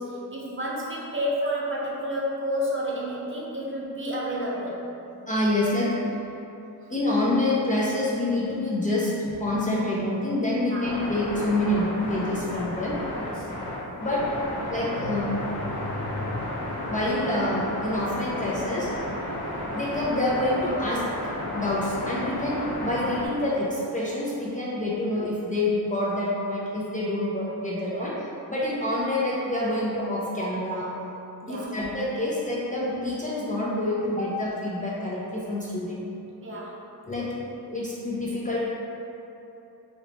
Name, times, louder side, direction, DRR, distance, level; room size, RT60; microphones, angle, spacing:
voice 1, 0.0-4.8 10.6-10.8 13.4-13.5 27.9-28.0 31.4-31.7 36.4-36.7 37.5-37.6, equal, 30° right, -5 dB, 0.6 m, -30 dB
voice 2, 5.3-6.0 6.9-13.0 14.0-14.3 14.7-16.3 16.9-18.9 19.7-21.1 21.5-28.1 28.5-30.9 31.5-36.1 37.1-37.3 37.7-38.6, left 1 dB, 20° left, -7 dB, 0.4 m, -27 dB
sound 1, 10.8-23.3, left 1 dB, 55° left, 1.1 m, -33 dB
3.1 x 2.8 x 2.9 m, 2.8 s
cardioid pair, 90°, 40 cm